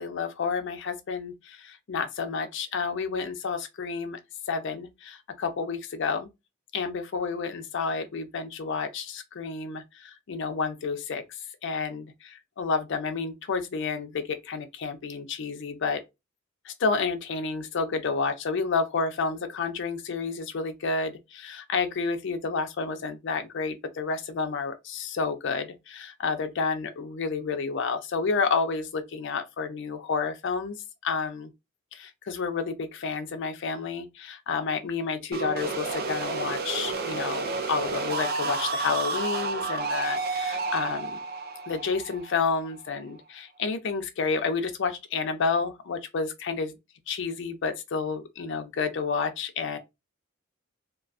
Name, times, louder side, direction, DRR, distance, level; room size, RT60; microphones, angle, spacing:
voice 1, 0.0-4.2 4.5-6.3 6.7-11.2 11.6-16.0 16.6-31.5 31.9-41.2 41.7-46.7 47.1-49.8, left 4 dB, 65° left, 0.4 m, -30 dB
sound 1, 35.3-43.0, right 3 dB, 50° right, 0.4 m, -31 dB
2.3 x 2.2 x 2.4 m
head